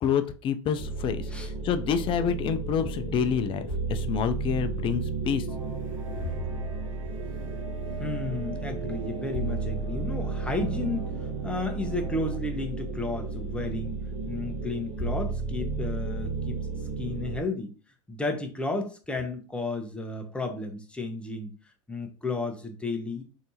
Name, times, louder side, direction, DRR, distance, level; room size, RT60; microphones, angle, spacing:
voice 1, 0.0-5.5, left 7 dB, 30° left, 9 dB, 0.4 m, -28 dB
sound 1, 0.8-17.4, right 3 dB, 40° right, 1.0 m, -33 dB
sound 2, 5.5-12.4, right 5 dB, 85° right, 0.5 m, -42 dB
voice 2, 7.9-13.9 14.3-16.6 17.0-17.7 18.1-21.5 21.9-23.2, left 3 dB, 5° left, 3 dB, 0.7 m, -33 dB
3.3 x 2.8 x 2.8 m, 0.37 s
hypercardioid pair, 95°, 17 cm